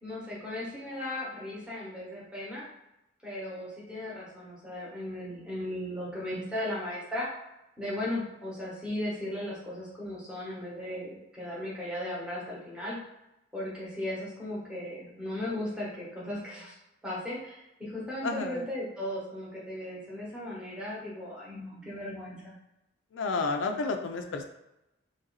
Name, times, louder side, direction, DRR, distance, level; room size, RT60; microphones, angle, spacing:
voice 1, 0.0-2.7 3.2-7.3 7.8-13.0 13.5-16.8 17.0-22.5, left 1 dB, 5° right, -7 dB, 1.1 m, -36 dB
voice 2, 18.2-18.6 23.1-24.4, left 3 dB, 80° left, 4 dB, 0.4 m, -31 dB
3.1 x 2.7 x 3.9 m, 0.91 s
head